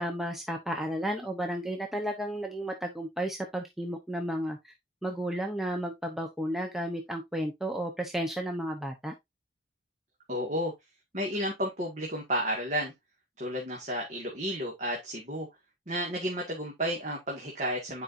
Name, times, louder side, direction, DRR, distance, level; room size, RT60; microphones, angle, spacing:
voice 1, 0.0-4.7 5.0-9.1, right 1 dB, ahead, 0.9 m, -33 dB
voice 2, 10.3-10.7 11.1-12.9 13.4-15.5 15.9-18.0, equal, 40° right, 1.9 m, -32 dB
9.7 x 5.1 x 2.6 m
head